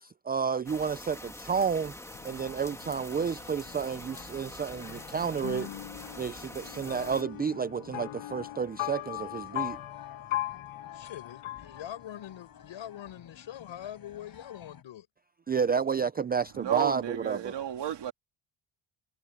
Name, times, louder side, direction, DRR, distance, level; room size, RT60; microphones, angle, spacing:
voice 1, 0.0-1.9 2.2-5.7 6.2-9.8 15.5-17.5, right 6 dB, 20° right, 0.4 m, -31 dB
sound 1, 0.7-7.2, left 1 dB, 5° left, 1.9 m, -45 dB
sound 2, 2.1-14.8, left 7 dB, 45° left, 7.2 m, -52 dB
sound 3, 5.4-12.4, left 14 dB, 85° left, 5.6 m, -38 dB
voice 2, 10.9-15.1, left 11 dB, 65° left, 5.4 m, -43 dB
voice 3, 16.5-18.1, right 10 dB, 55° right, 2.7 m, -33 dB
cardioid pair, 135°, 49 cm